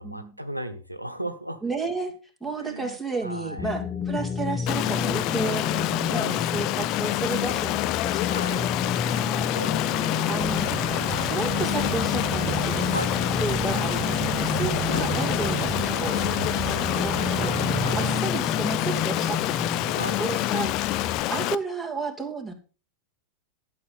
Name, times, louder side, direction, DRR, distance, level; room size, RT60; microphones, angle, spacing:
voice 1, 0.0-1.6 2.6-3.7 5.9-6.4 8.2-8.7 9.5-10.3 12.8-13.1 14.9-15.1 17.8-18.0 19.9-20.2, right 1 dB, 90° right, 9 dB, 1.1 m, -36 dB
voice 2, 1.6-2.1 2.4-5.7 6.1-9.5 10.2-10.9 11.2-12.9 13.4-15.7 16.0-16.4 16.6-21.0 21.3-22.5, right 3 dB, ahead, 0 dB, 2.8 m, -33 dB
sound 1, 3.6-21.2, left 6 dB, 20° left, 1.2 m, -31 dB
Stream, 4.7-21.5, left 16 dB, 40° left, 0.6 m, -27 dB
sound 2, 10.4-18.2, right 7 dB, 35° right, 1.7 m, -33 dB
12.5 x 7.7 x 5.6 m, 0.35 s
figure-of-eight pair, 90°, 0 cm